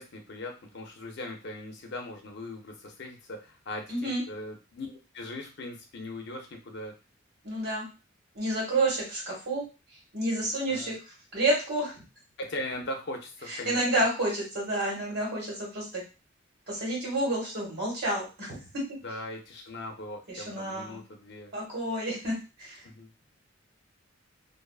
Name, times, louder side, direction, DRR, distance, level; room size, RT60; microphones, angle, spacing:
voice 1, 0.0-7.0 10.7-10.9 12.4-14.0 19.0-21.5 22.8-23.1, left 1 dB, 60° left, 3 dB, 0.6 m, -40 dB
voice 2, 3.9-4.2 7.4-7.9 8.3-9.7 10.1-11.0 11.3-12.0 13.5-16.0 16.7-19.0 20.3-21.0 21.5-22.8, right 1 dB, 60° right, -3 dB, 1.5 m, -30 dB
2.6 x 2.4 x 2.3 m, 0.30 s
head